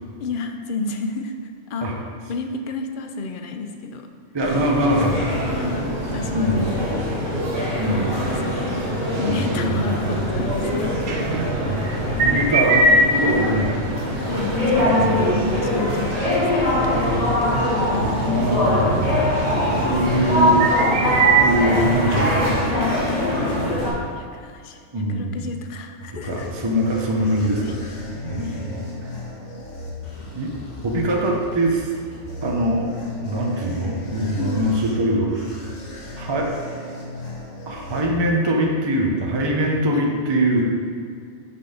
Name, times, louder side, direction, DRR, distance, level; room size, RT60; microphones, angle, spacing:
voice 1, 0.2-1.3 1.7-1.9 2.3-4.1 5.5-7.0 8.3-8.8 9.2-11.3 11.9-12.1 14.2-16.8 17.9-18.1 23.8-24.8 25.1-26.5 27.4-27.7 28.5-28.6 34.4-34.7 39.9-40.1, left 4 dB, 55° left, 6 dB, 0.7 m, -31 dB
voice 2, 4.3-5.3 6.3-6.8 7.8-8.2 9.3-9.5 12.2-13.8 14.9-15.6 18.3-19.2 19.6-20.7 21.3-22.7 24.9-25.5 26.2-27.8 28.2-28.9 30.3-30.5 30.8-31.9 32.4-32.9 33.2-35.6 36.2-36.5 37.7-40.7, right 1 dB, 25° right, -1 dB, 0.8 m, -22 dB
sound 1, 4.4-23.9, left 1 dB, 30° left, 1.7 m, -23 dB
sound 2, 4.8-22.6, right 3 dB, 85° right, 1.3 m, -26 dB
sound 3, 25.7-38.6, left 2 dB, 70° left, 1.8 m, -37 dB
6.3 x 5.6 x 5.1 m, 2.1 s
omnidirectional pair, 1.3 m